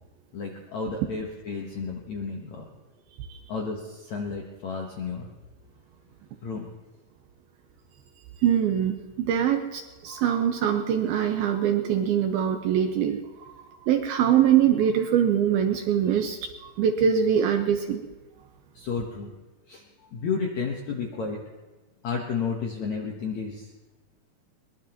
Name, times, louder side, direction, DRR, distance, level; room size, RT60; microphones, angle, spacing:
voice 1, 0.3-2.7 3.5-5.3 6.4-6.7 18.7-19.3 19.7-21.4 22.0-23.7, left 5 dB, 70° left, 0 dB, 1.7 m, -32 dB
voice 2, 8.4-13.4 13.7-18.0, right 9 dB, 75° right, 5 dB, 2.3 m, -23 dB
22.5 x 21.0 x 3.0 m, 1.2 s
omnidirectional pair, 5.0 m